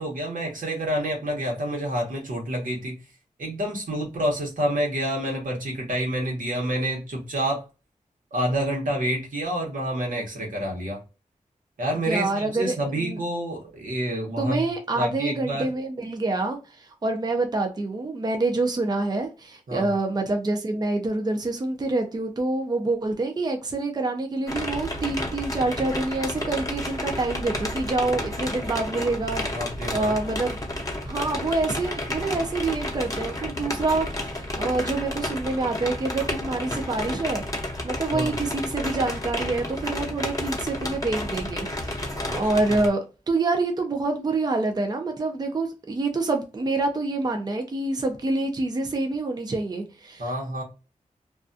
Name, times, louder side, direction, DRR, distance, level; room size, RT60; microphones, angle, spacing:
voice 1, 0.0-3.0 3.4-7.6 8.3-11.0 11.8-14.6 14.9-15.7 19.7-19.9 29.5-30.2 38.1-38.3 42.2-42.3 42.7-42.8 50.2-50.6, right 1 dB, 80° right, 1.0 m, -28 dB
voice 2, 12.1-13.2 14.4-29.4 29.9-30.6 31.1-34.1 34.6-37.4 37.8-43.0 43.3-50.3, right 2 dB, 30° right, 0.4 m, -26 dB
sound 1, 24.5-42.9, left 1 dB, 25° left, 0.7 m, -31 dB
2.4 x 2.2 x 2.5 m
wide cardioid pair, 95°, 14 cm